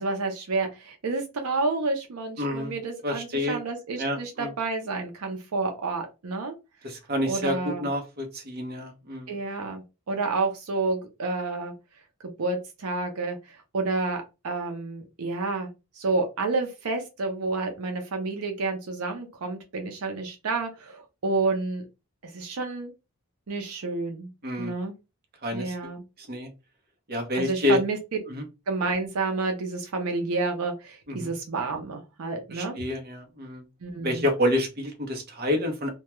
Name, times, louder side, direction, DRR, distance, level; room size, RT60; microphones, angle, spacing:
voice 1, 0.0-6.5 7.3-7.9 9.3-11.7 12.4-15.7 16.0-21.8 22.2-22.9 23.5-24.3 24.6-24.9 25.5-26.0 27.4-28.0 28.7-32.8 33.8-34.2, right 3 dB, 80° right, 4 dB, 0.6 m, -29 dB
voice 2, 2.4-2.7 3.0-3.6 4.0-4.5 6.8-9.3 24.4-24.7 25.4-25.7 26.2-26.5 27.1-27.8 28.3-28.4 31.1-31.3 32.5-33.6 34.0-35.9, left 1 dB, 45° right, 3 dB, 0.7 m, -28 dB
2.2 x 2.2 x 2.9 m, 0.27 s
head